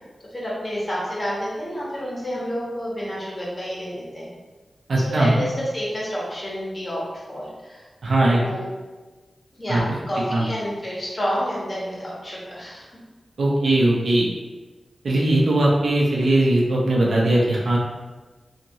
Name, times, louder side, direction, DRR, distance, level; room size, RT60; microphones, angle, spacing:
voice 1, 0.3-4.3 5.0-7.0 7.3-7.9 8.3-8.7 9.6-12.9 13.6-13.7 16.2-16.4, equal, 40° left, -7 dB, 1.3 m, -29 dB
voice 2, 4.9-5.4 8.0-8.4 9.7-9.8 10.3-10.4 13.4-14.3 15.0-17.8, right 1 dB, 75° right, -4 dB, 0.6 m, -19 dB
2.8 x 2.5 x 2.9 m, 1.2 s
cardioid pair, 45°, 0 cm